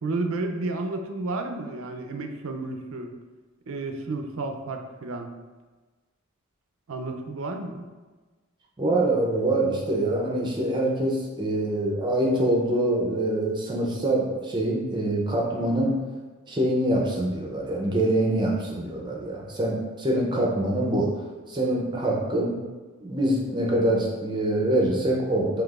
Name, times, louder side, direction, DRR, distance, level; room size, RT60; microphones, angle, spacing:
voice 1, 0.0-3.1 3.7-5.3 6.9-7.8, right 2 dB, 70° right, 5 dB, 0.5 m, -31 dB
voice 2, 8.8-16.0 16.5-21.1 21.5-22.6 23.0-25.6, right 1 dB, 20° right, -2 dB, 0.5 m, -25 dB
5.7 x 2.9 x 2.4 m, 1.3 s
head